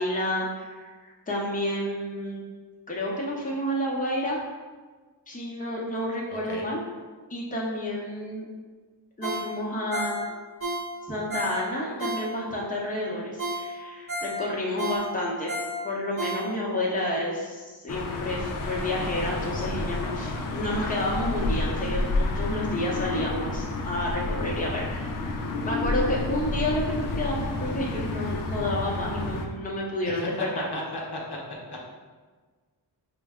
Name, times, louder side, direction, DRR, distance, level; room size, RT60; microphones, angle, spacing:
voice 1, 0.0-2.4 2.9-4.5 5.3-6.8 7.3-8.4 9.2-10.1 11.1-15.6 15.8-25.4 25.6-30.6, left 1 dB, 20° left, -4 dB, 0.7 m, -30 dB
voice 2, 6.3-6.6 30.1-30.5 30.7-31.4 31.7-31.8, left 2 dB, 65° left, -2 dB, 0.9 m, -35 dB
Ringtone, 9.2-12.7 13.1-13.2 13.4-16.8 17.2-17.3, right 1 dB, 30° right, 0.8 m, -33 dB
sound 1, 17.9-29.5, left 2 dB, 50° left, 0.5 m, -30 dB
4.6 x 2.1 x 3.5 m, 1.4 s
wide cardioid pair, 95°, 43 cm